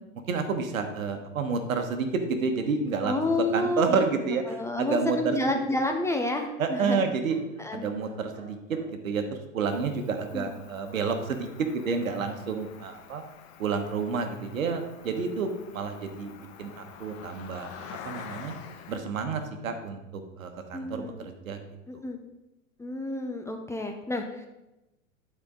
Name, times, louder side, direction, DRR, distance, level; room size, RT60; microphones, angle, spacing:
voice 1, 0.3-3.2 3.5-5.4 6.6-7.4 7.7-13.2 13.6-18.5 18.9-21.6 21.9-22.0, right 5 dB, 80° right, 6 dB, 1.2 m, -30 dB
voice 2, 3.0-4.0 4.5-7.0 7.6-7.8 10.3-10.5 20.7-21.2 21.9-22.2 22.8-24.5, left 2 dB, 5° left, 3 dB, 0.6 m, -29 dB
sound 1, 3.7-3.9 6.1-6.3 6.6-7.5 8.0-8.9, right 1 dB, 20° right, 2.4 m, -53 dB
Cricket, 9.6-19.0, left 8 dB, 55° left, 1.1 m, -47 dB
12.0 x 4.4 x 3.8 m, 0.97 s
hypercardioid pair, 105°, 40 cm